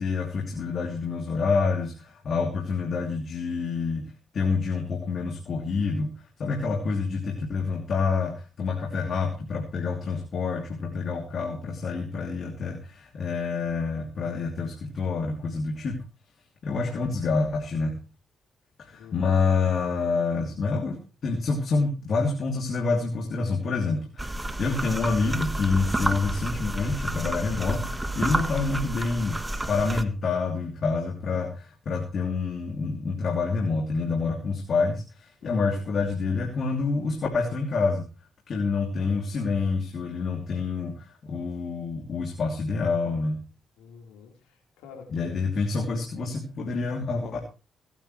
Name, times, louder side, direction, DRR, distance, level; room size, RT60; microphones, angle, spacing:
voice 1, 0.0-4.0 4.3-16.0 16.6-17.9 18.8-29.4 29.7-38.0 38.5-43.4 45.1-47.4, left 4 dB, 60° left, 1 dB, 3.0 m, -27 dB
voice 2, 16.7-17.1 19.0-19.4 35.4-36.0 38.9-39.9 40.3-40.9 43.8-45.8, left 6 dB, 85° left, 2 dB, 4.1 m, -49 dB
sound 1, 24.2-30.0, right 1 dB, 15° right, 1.4 m, -30 dB
24.5 x 9.2 x 3.3 m, 0.32 s
supercardioid pair, 55°, 0 cm